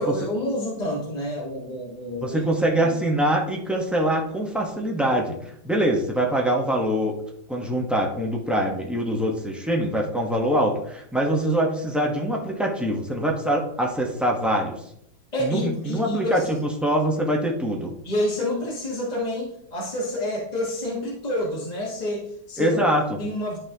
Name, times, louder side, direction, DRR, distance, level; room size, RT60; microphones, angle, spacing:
voice 1, 0.0-2.4 2.8-2.9 15.3-16.6 18.0-23.6, left 1 dB, 25° left, -4 dB, 1.2 m, -28 dB
voice 2, 2.2-5.4 5.6-7.2 7.5-14.8 15.4-17.9 22.6-23.0, right 1 dB, ahead, -1 dB, 0.5 m, -24 dB
11.5 x 3.8 x 2.8 m, 0.74 s
omnidirectional pair, 1.8 m